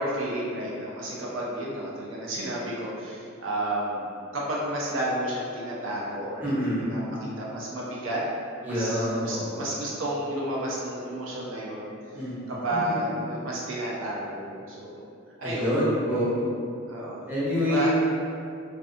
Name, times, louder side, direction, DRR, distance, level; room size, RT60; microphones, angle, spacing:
voice 1, 0.0-4.1 4.3-8.2 8.7-11.9 12.5-15.0 15.4-15.9 16.9-17.2 17.6-17.9, right 1 dB, 85° right, -5 dB, 0.5 m, -31 dB
voice 2, 6.4-6.8 8.6-9.7 12.1-13.1 15.4-16.5 17.3-18.0, equal, 10° right, -9 dB, 0.6 m, -27 dB
2.5 x 2.2 x 2.4 m, 2.4 s
head